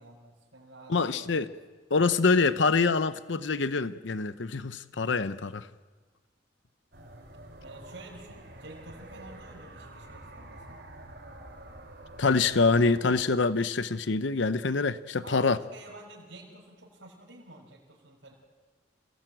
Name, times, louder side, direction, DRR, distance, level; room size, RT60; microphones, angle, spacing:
voice 1, 0.0-1.5 7.6-10.8 15.2-18.3, right 2 dB, 80° right, -5 dB, 5.4 m, -49 dB
voice 2, 0.9-1.5 1.9-5.7 12.2-15.6, left 4 dB, 75° left, 13 dB, 0.8 m, -25 dB
sound 1, 6.9-13.3, right 1 dB, 60° right, 5.2 m, -47 dB
28.0 x 18.5 x 9.1 m, 1.4 s
head